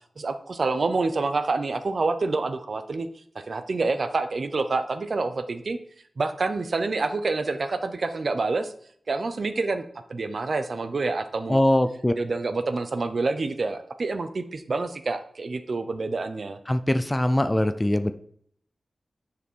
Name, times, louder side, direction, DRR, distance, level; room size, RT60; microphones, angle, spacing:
voice 1, 0.2-3.1 3.5-5.8 6.2-8.7 9.1-9.8 10.1-11.6 12.2-16.6, right 3 dB, 50° right, 10 dB, 0.8 m, -27 dB
voice 2, 11.5-12.1 16.7-18.1, left 1 dB, 15° left, 11 dB, 0.5 m, -22 dB
10.0 x 5.1 x 4.6 m, 0.63 s
wide cardioid pair, 130°, 0 cm